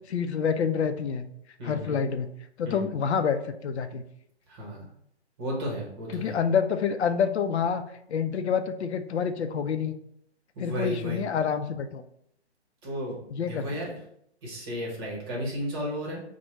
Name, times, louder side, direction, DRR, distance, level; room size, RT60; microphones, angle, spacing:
voice 1, 0.1-1.3 1.6-2.3 2.6-4.0 6.1-7.8 8.1-9.9 10.6-12.0 13.3-13.7, left 6 dB, 75° left, 8 dB, 0.5 m, -27 dB
voice 2, 1.6-2.0 2.6-2.9 4.5-4.8 5.4-6.4 10.5-11.2 12.8-14.0 14.4-16.2, equal, 20° right, -3 dB, 0.9 m, -34 dB
4.6 x 2.2 x 3.1 m, 0.71 s
hypercardioid pair, 155°, 34 cm